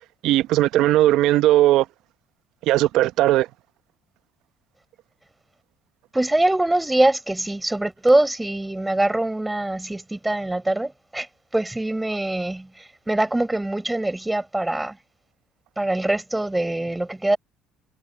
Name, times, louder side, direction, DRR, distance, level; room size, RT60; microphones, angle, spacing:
voice 1, 0.2-1.9 2.6-3.5, right 15 dB, 70° right, 0.8 m, -18 dB
voice 2, 6.1-15.0 15.8-17.4, right 1 dB, 10° right, 4.5 m, -23 dB
supercardioid pair, 85°, 0 cm